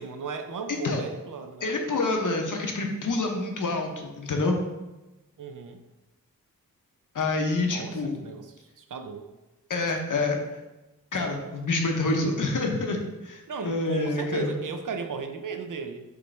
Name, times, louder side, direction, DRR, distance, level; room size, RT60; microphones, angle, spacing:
voice 1, 0.0-1.8 5.4-5.8 7.7-9.3 9.8-9.9 13.5-16.0, right 5 dB, 60° right, 7 dB, 0.5 m, -36 dB
voice 2, 0.7-1.0 1.6-4.6 7.1-8.2 9.7-10.4 11.1-14.5, left 2 dB, 60° left, 3 dB, 0.8 m, -27 dB
5.0 x 3.1 x 3.2 m, 1.1 s
wide cardioid pair, 110°, 35 cm